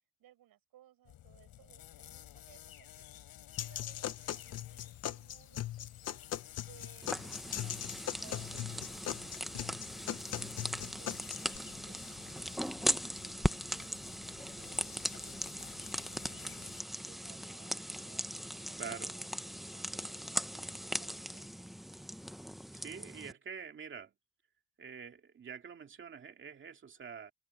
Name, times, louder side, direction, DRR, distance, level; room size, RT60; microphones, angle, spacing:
voice 1, 0.2-3.1 3.5-6.2 6.6-9.8 10.4-16.7 17.0-21.9, right 12 dB, 75° right, 6.7 m, -63 dB
sound 1, 1.0-16.8, left 12 dB, 80° left, 6.9 m, -53 dB
sound 2, 3.6-11.6, left 11 dB, 45° left, 0.8 m, -40 dB
sound 3, 7.0-23.3, equal, ahead, 0.5 m, -39 dB
voice 2, 18.8-19.1 22.7-24.1 24.8-27.3, right 6 dB, 35° right, 2.2 m, -46 dB
cardioid pair, 170°, 35 cm